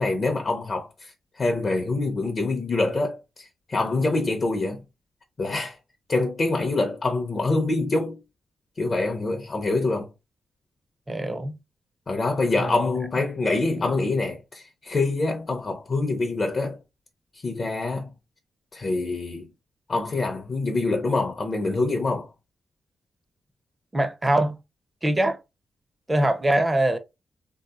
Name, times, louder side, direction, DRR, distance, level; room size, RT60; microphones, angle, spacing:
voice 1, 0.0-4.8 5.4-5.8 6.1-8.2 8.8-10.1 12.1-16.8 17.3-18.1 18.7-19.5 19.9-22.3, left 3 dB, 40° left, 0.6 m, -25 dB
voice 2, 11.1-11.6 12.6-12.8 13.7-13.8 23.9-24.6 25.0-25.4 26.1-27.0, right 1 dB, 15° right, 0.5 m, -23 dB
3.4 x 2.7 x 2.3 m
cardioid pair, 105°, 0 cm